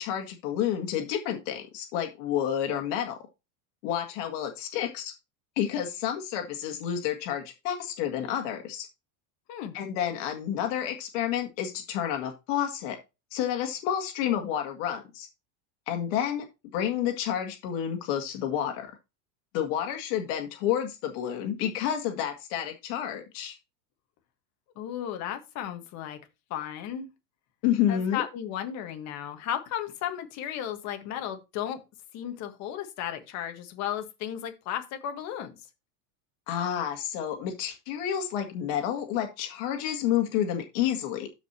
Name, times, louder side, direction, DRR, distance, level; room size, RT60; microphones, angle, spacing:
voice 1, 0.0-3.2 3.8-5.1 5.6-8.9 9.7-13.0 13.3-15.3 15.9-16.5 16.7-19.0 19.5-23.6 27.6-28.2 36.5-41.3, left 10 dB, 55° left, 2.0 m, -30 dB
voice 2, 24.7-26.2 26.5-27.1 27.9-31.8 32.1-35.5, left 10 dB, 35° left, 1.5 m, -34 dB
13.5 x 5.1 x 2.9 m
supercardioid pair, 165°, 46 cm